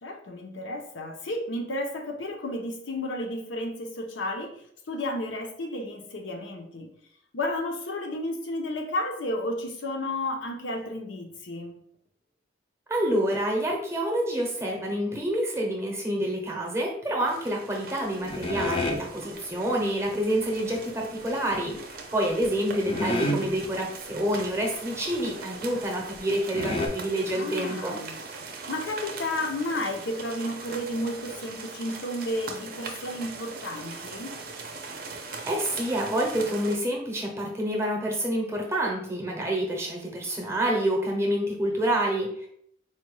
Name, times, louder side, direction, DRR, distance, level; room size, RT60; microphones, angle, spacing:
voice 1, 0.0-4.6 4.9-6.9 7.3-11.8 27.3-28.2 28.7-34.4, left 1 dB, 85° left, 3 dB, 0.6 m, -32 dB
voice 2, 12.9-21.8 22.1-28.0 35.5-42.5, right 1 dB, 15° right, 0 dB, 0.6 m, -28 dB
sound 1, 17.2-36.8, right 4 dB, 50° right, 0.5 m, -41 dB
sound 2, 18.2-19.0 21.5-21.9 22.4-22.5 22.9-23.7 24.2-24.3 24.5-24.7 25.2-25.3 26.1-26.2 26.5-26.9, left 1 dB, 30° left, 0.4 m, -29 dB
4.1 x 2.2 x 3.1 m, 0.68 s
head